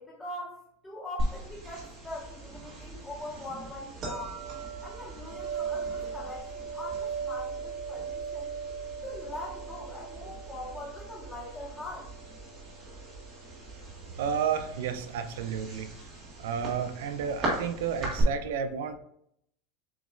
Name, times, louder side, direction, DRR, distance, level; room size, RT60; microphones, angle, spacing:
voice 1, 0.0-4.4 4.8-8.5 9.0-12.1, left 1 dB, 10° left, -5 dB, 1.6 m, -42 dB
sound 1, 1.2-18.2, right 3 dB, 35° right, 1.7 m, -38 dB
voice 2, 14.2-15.9 16.4-19.0, right 7 dB, 80° right, 9 dB, 0.5 m, -31 dB
6.9 x 3.0 x 2.5 m, 0.71 s
supercardioid pair, 155°, 0 cm